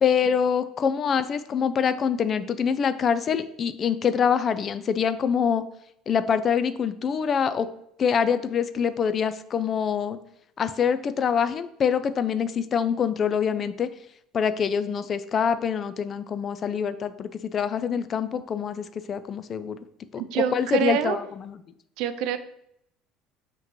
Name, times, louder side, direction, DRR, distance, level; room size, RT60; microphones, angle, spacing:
voice 1, 0.0-5.6 6.1-7.7 8.0-10.2 10.6-13.9 14.3-19.8 20.1-21.6, left 7 dB, 40° left, 12 dB, 0.3 m, -25 dB
voice 2, 20.2-21.2 22.0-22.4, right 10 dB, 70° right, 11 dB, 0.4 m, -26 dB
5.7 x 3.0 x 3.0 m, 0.75 s
hypercardioid pair, 80°, 0 cm